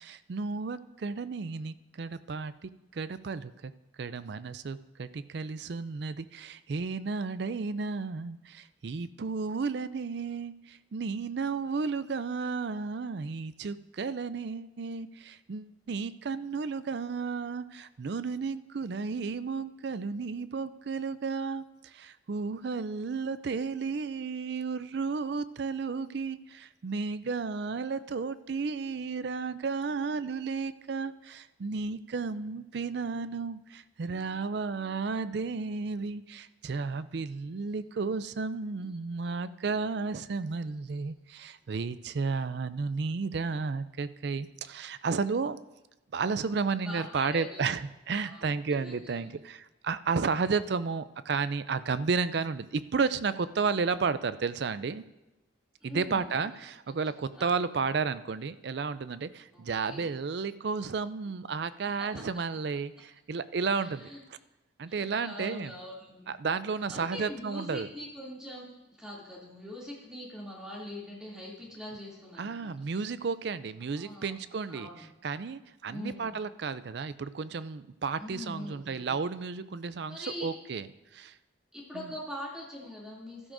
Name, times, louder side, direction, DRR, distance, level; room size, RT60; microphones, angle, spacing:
voice 1, 0.0-3.7 4.0-45.6 46.1-55.0 55.8-64.1 64.8-65.7 66.3-67.9 72.4-80.9 81.1-81.3 81.9-82.1, right 4 dB, 60° right, 14 dB, 0.4 m, -33 dB
voice 2, 46.7-47.6 48.2-49.3 53.9-54.0 55.8-56.6 57.3-57.6 59.5-60.1 62.0-62.1 63.8-64.2 64.9-66.3 66.9-72.7 73.9-74.4 74.7-75.1 75.9-76.3 78.2-79.2 80.1-80.5 81.7-83.5, equal, 5° right, -5 dB, 2.7 m, -43 dB
15.0 x 12.5 x 2.6 m, 0.99 s
head